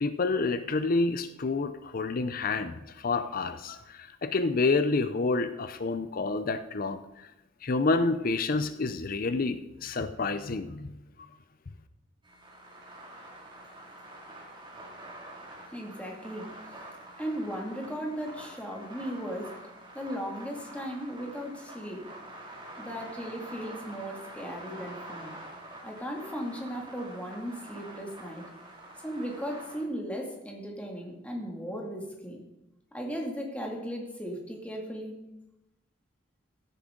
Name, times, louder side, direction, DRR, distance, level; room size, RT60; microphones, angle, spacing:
voice 1, 0.0-7.3 7.6-10.9, left 3 dB, 50° left, 11 dB, 0.6 m, -29 dB
sound 1, 12.2-29.8, right 1 dB, 25° right, 2.5 m, -46 dB
voice 2, 15.7-16.5 17.2-19.6 19.9-22.0 22.8-25.3 25.8-28.4 29.0-32.4 32.9-35.2, equal, 5° left, -1 dB, 2.3 m, -37 dB
16.0 x 10.0 x 3.8 m, 0.94 s
head